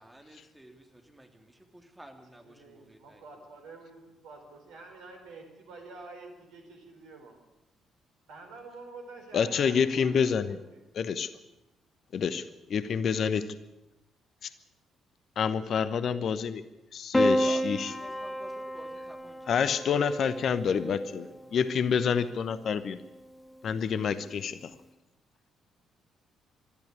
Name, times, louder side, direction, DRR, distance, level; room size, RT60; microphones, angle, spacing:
voice 1, 0.0-3.4 17.2-19.8 20.1-21.6, right 1 dB, 10° right, 4 dB, 3.5 m, -52 dB
voice 2, 2.4-7.4 8.3-10.8, right 3 dB, 65° right, 3 dB, 4.5 m, -48 dB
voice 3, 9.3-10.6 10.9-11.3 12.1-13.5 15.4-16.6 16.9-17.9 19.5-23.0 23.6-24.7, left 6 dB, 50° left, 14 dB, 1.0 m, -28 dB
Piano, 17.1-21.6 22.8-23.5, equal, 10° left, 1.5 m, -31 dB
21.5 x 13.5 x 9.8 m, 0.96 s
figure-of-eight pair, 45°, 0 cm